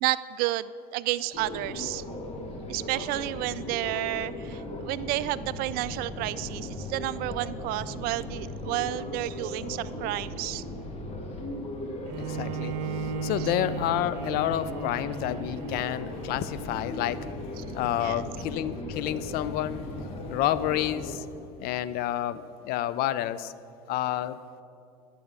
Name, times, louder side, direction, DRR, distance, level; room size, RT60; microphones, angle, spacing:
voice 1, 0.0-2.0 2.7-10.6 13.4-13.5 17.6-17.7 18.0-18.2, right 16 dB, 50° right, 16 dB, 0.4 m, -31 dB
sound 1, 1.3-21.2, left 1 dB, 30° left, 1.6 m, -37 dB
voice 2, 12.1-12.8 13.2-17.3 17.7-19.9 20.3-21.3 21.6-23.5 23.9-24.4, left 12 dB, 50° left, 15 dB, 0.5 m, -29 dB
Bowed string instrument, 12.1-17.3, right 6 dB, 65° right, 0.8 m, -36 dB
11.0 x 7.0 x 6.3 m, 2.6 s
hypercardioid pair, 95°, 20 cm